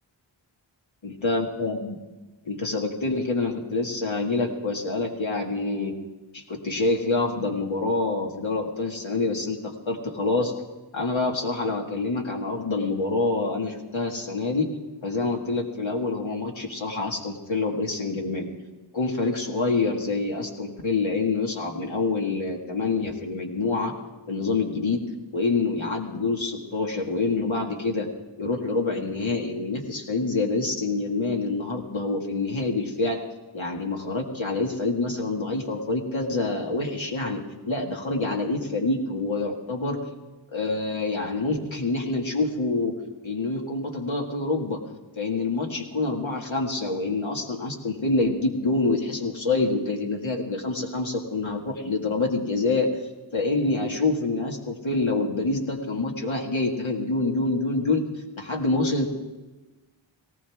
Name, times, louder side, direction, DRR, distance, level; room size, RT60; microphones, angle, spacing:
voice 1, 1.0-2.0 2.4-5.9 6.3-10.5 10.9-14.7 15.0-18.5 18.9-23.9 24.3-25.0 25.3-28.1 28.4-33.2 33.5-40.0 40.5-43.0 43.2-44.8 45.2-52.9 53.3-58.1 58.4-59.2, left 3 dB, 80° left, 0 dB, 2.0 m, -26 dB
18.5 x 18.0 x 3.6 m, 1.2 s
wide cardioid pair, 65°, 46 cm